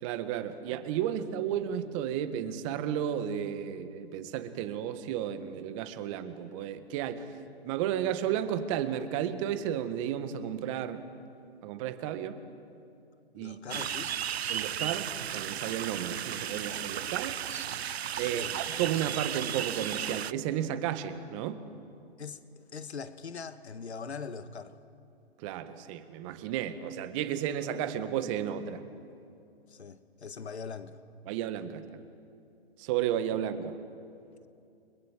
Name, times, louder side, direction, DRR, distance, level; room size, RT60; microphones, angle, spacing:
voice 1, 0.0-7.3 7.6-11.1 11.6-12.4 13.3-13.6 14.5-17.4 18.2-21.6 25.4-28.9 31.3-31.8 32.8-33.8, right 10 dB, 30° right, 10 dB, 1.7 m, -33 dB
voice 2, 13.3-14.2 18.2-18.5 22.2-22.4 22.7-24.8 29.7-31.0, left 5 dB, 85° left, 11 dB, 1.6 m, -41 dB
sound 1, 13.7-20.3, right 9 dB, 70° right, 0.7 m, -34 dB
30.0 x 22.5 x 7.6 m, 2.6 s
hypercardioid pair, 140°, 32 cm